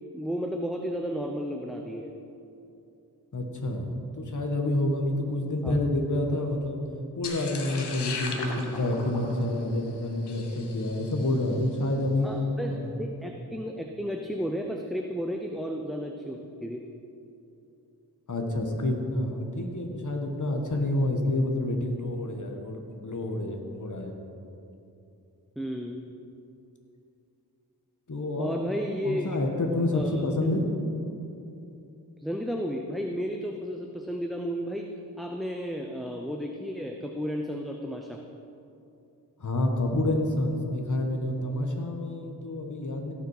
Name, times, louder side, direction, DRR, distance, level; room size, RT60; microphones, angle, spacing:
voice 1, 0.1-2.1 5.6-5.8 12.2-12.7 13.0-16.8 25.6-26.0 28.4-29.2 29.9-30.6 32.2-34.9 35.2-38.2, equal, ahead, 2 dB, 0.7 m, -33 dB
voice 2, 3.3-6.8 7.2-12.3 12.6-13.2 18.3-24.2 28.1-28.5 29.0-30.7 39.4-43.1, left 1 dB, 50° left, 3 dB, 1.6 m, -28 dB
sound 1, 7.2-11.5, left 3 dB, 85° left, 1.2 m, -38 dB
16.5 x 6.0 x 4.9 m, 2.8 s
cardioid pair, 55°, 39 cm